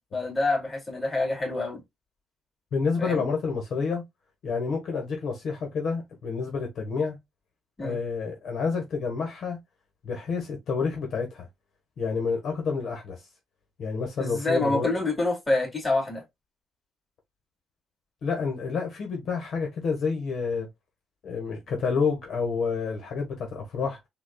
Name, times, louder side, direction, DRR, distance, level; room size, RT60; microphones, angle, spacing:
voice 1, 0.0-1.8 3.0-3.2 7.8-8.0 14.2-16.2, left 2 dB, 15° left, 2.6 m, -27 dB
voice 2, 2.7-4.0 4.4-7.2 7.8-9.6 10.0-11.5 12.0-13.2 13.8-14.9 18.2-20.7 21.2-24.0, left 5 dB, 65° left, 1.2 m, -29 dB
6.1 x 2.4 x 2.2 m
cardioid pair, 90°, 0 cm